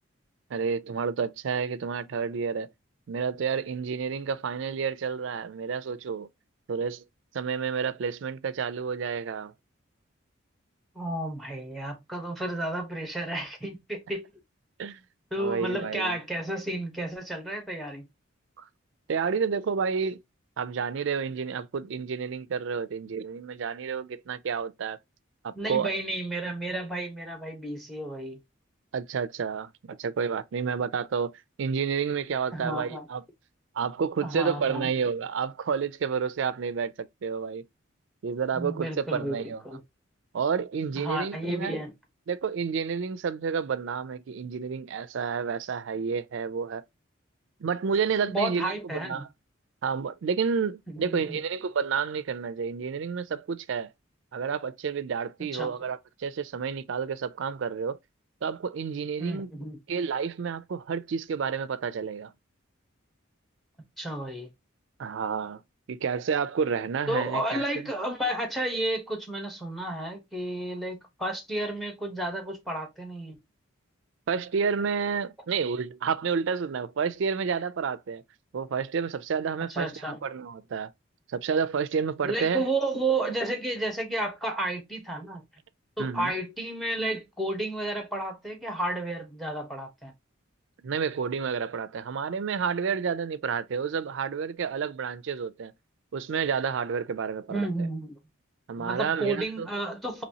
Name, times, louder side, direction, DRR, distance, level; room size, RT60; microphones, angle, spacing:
voice 1, 0.5-2.7 3.1-6.3 6.7-7.0 7.3-9.5 14.8-15.0 15.4-16.2 19.1-20.2 20.6-25.0 25.4-25.9 28.9-31.3 31.6-33.2 33.8-37.6 38.2-39.6 40.3-41.8 42.3-46.8 47.6-49.3 49.8-53.9 54.3-58.0 58.4-59.5 59.9-62.3 65.0-65.6 65.9-67.9 74.3-78.2 78.5-80.9 81.3-82.6 86.0-86.3 90.8-95.7 96.1-97.7 98.7-99.7, right 6 dB, 65° right, 0.4 m, -30 dB
voice 2, 10.9-14.3 15.3-18.1 25.5-28.4 32.5-33.1 34.2-34.9 38.5-39.8 41.0-41.9 48.3-49.3 50.9-51.4 55.5-55.7 59.2-59.8 64.0-64.5 67.1-73.4 79.7-80.2 82.2-85.4 86.0-90.1 97.5-98.2 98.8-100.2, right 1 dB, ahead, 0.9 m, -32 dB
4.0 x 3.0 x 2.7 m
head